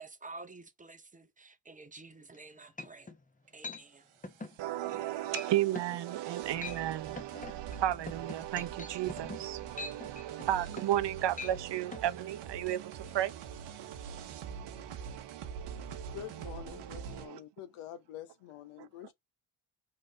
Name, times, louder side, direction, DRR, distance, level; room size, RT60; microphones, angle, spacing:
voice 1, 0.0-3.1 3.5-4.1, right 3 dB, 15° right, 0.7 m, -50 dB
sound 1, 2.3-2.4 2.8-3.2 3.6-3.8 4.2-4.6 4.9-5.1 5.3-5.5 5.7-6.0 6.4-6.8 7.2-11.0 11.3-11.6 11.9-12.0, left 3 dB, 15° left, 0.8 m, -43 dB
sound 2, 4.0-17.3, right 7 dB, 80° right, 1.0 m, -46 dB
voice 2, 4.6-16.2 16.8-17.4, right 13 dB, 60° right, 0.6 m, -34 dB
voice 3, 16.1-19.1, left 11 dB, 80° left, 0.8 m, -46 dB
3.7 x 3.1 x 2.7 m
cardioid pair, 65°, 49 cm